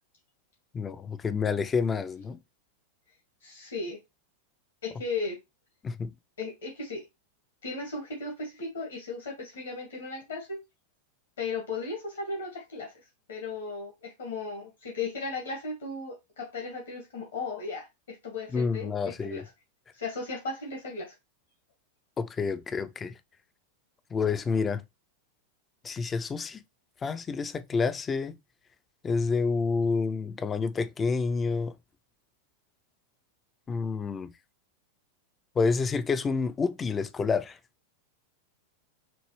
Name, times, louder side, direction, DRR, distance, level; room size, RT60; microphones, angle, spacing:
voice 1, 0.7-2.4 5.8-6.1 18.5-19.4 22.2-23.2 24.1-24.8 25.8-26.6 27.0-28.4 29.0-31.7 33.7-34.3 35.6-37.6, left 5 dB, 20° left, 0.5 m, -28 dB
voice 2, 3.4-4.0 4.8-5.4 6.4-7.0 7.6-10.6 11.4-12.9 13.3-18.9 19.2-19.4 20.0-21.1, left 3 dB, 65° left, 1.5 m, -36 dB
6.0 x 2.6 x 3.1 m
figure-of-eight pair, 90°, 0 cm